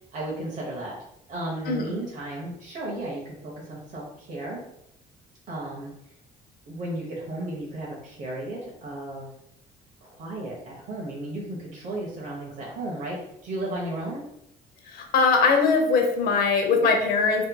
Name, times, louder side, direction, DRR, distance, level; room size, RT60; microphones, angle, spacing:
voice 1, 0.1-1.0 1.3-4.6 5.5-5.9 6.7-9.3 10.0-14.2, right 1 dB, 50° right, -4 dB, 0.7 m, -34 dB
voice 2, 14.9-17.5, left 4 dB, 65° left, 3 dB, 0.6 m, -21 dB
2.7 x 2.6 x 2.2 m, 0.77 s
cardioid pair, 110°, 17 cm